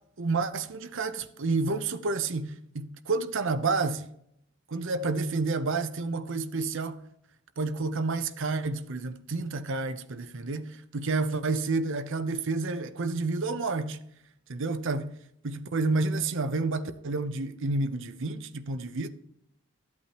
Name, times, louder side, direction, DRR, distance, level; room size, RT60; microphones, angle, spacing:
voice 1, 0.2-4.1 4.7-7.0 7.6-14.0 14.5-15.1 15.4-19.1, right 3 dB, 60° right, 0.7 m, -30 dB
14.0 x 8.5 x 3.0 m
head